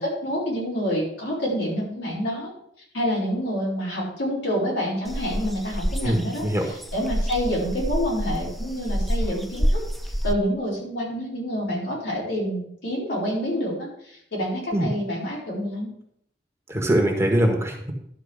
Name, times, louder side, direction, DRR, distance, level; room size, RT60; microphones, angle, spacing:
voice 1, 0.0-2.5 2.9-6.4 6.9-9.8 10.2-15.9, equal, 75° left, -5 dB, 4.7 m, -27 dB
sound 1, 5.1-10.3, equal, ahead, 0.4 m, -27 dB
voice 2, 6.0-6.7 14.7-14.9 16.7-17.9, right 1 dB, 15° right, 1 dB, 1.5 m, -22 dB
11.5 x 4.6 x 6.5 m, 0.71 s
head